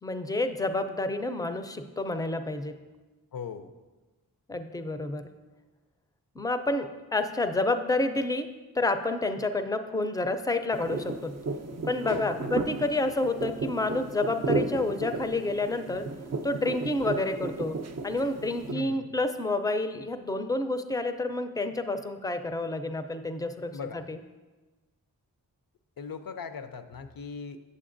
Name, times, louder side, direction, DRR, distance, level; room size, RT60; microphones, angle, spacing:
voice 1, 0.0-2.8 4.5-5.3 6.4-8.5 8.7-11.3 11.9-16.0 16.4-17.8 18.0-24.2, left 2 dB, 10° left, 8 dB, 0.4 m, -29 dB
voice 2, 3.3-3.7 12.0-12.5 18.7-19.1 23.7-24.1 26.0-27.6, left 5 dB, 60° left, 10 dB, 0.5 m, -39 dB
sound 1, 10.7-18.7, right 3 dB, 45° right, 0.5 m, -34 dB
8.5 x 6.5 x 2.5 m, 1.2 s
cardioid pair, 45°, 39 cm